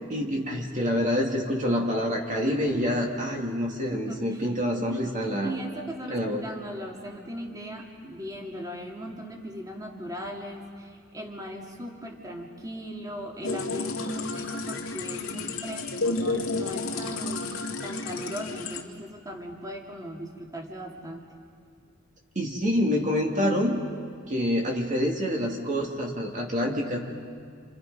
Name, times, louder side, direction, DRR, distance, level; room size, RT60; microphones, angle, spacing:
voice 1, 0.1-5.5 6.1-6.4 22.4-23.8 24.3-27.0, equal, 35° right, 0 dB, 2.3 m, -27 dB
voice 2, 3.9-4.5 4.9-21.2, equal, 20° right, 0 dB, 2.5 m, -38 dB
sound 1, 13.4-18.8, left 3 dB, 90° left, 2.2 m, -31 dB
29.0 x 28.5 x 5.4 m, 2.2 s
head